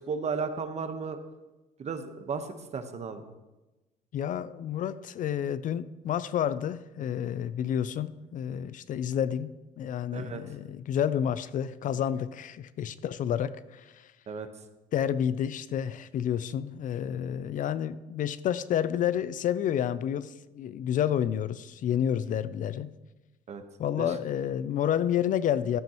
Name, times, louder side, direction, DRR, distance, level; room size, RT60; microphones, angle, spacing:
voice 1, 0.1-1.2 1.8-2.5 2.7-3.2 10.1-10.4 14.3-14.5 23.5-23.6 24.0-24.1, right 5 dB, 40° right, 8 dB, 1.1 m, -34 dB
voice 2, 4.1-14.1 14.9-22.9 23.8-25.8, left 9 dB, 50° left, 15 dB, 0.4 m, -30 dB
14.5 x 9.1 x 3.0 m, 1.1 s
cardioid pair, 110°, 17 cm